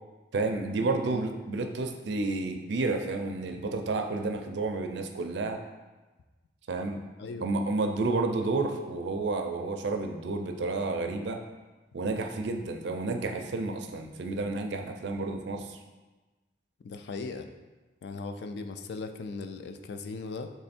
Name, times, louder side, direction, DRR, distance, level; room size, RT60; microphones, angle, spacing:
voice 1, 0.3-5.6 6.7-7.0 7.4-11.4 11.9-15.8, right 3 dB, 60° right, 5 dB, 0.4 m, -30 dB
voice 2, 16.8-17.5 18.0-20.5, left 4 dB, 60° left, 7 dB, 0.3 m, -38 dB
3.5 x 3.3 x 4.2 m, 1.2 s
head